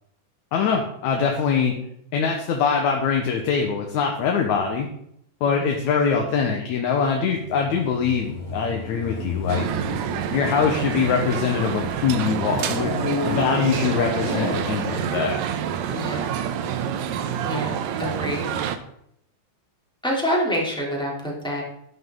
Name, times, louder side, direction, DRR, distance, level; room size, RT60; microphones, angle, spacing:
voice 1, 0.5-1.8 2.1-4.9 5.4-9.7 10.3-12.9 13.3-15.4, left 6 dB, 70° left, 2 dB, 2.4 m, -23 dB
sound 1, 7.2-11.9 12.7-15.2 15.9-16.0, left 3 dB, 35° left, 1.2 m, -32 dB
sound 2, 9.5-18.8, right 8 dB, 75° right, 2.0 m, -27 dB
voice 2, 15.9-16.3 17.4-18.5 20.0-21.6, equal, ahead, -4 dB, 3.0 m, -27 dB
11.0 x 10.5 x 3.9 m, 0.73 s
omnidirectional pair, 3.6 m